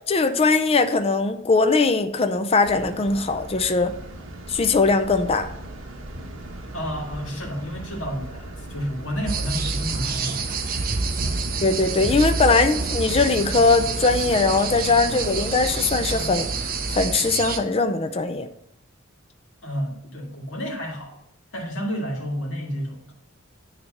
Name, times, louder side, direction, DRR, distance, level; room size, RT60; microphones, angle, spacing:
voice 1, 0.1-3.9 4.5-5.5 11.6-18.5, left 3 dB, 30° left, 8 dB, 0.5 m, -21 dB
sound 1, 2.6-17.0, right 1 dB, 70° right, 1.3 m, -39 dB
voice 2, 6.7-10.6 11.2-11.5 19.6-21.2 21.5-23.1, equal, 65° left, -2 dB, 2.0 m, -31 dB
sound 2, 9.3-17.6, right 4 dB, 45° right, 0.8 m, -27 dB
9.7 x 3.4 x 6.4 m, 0.77 s
head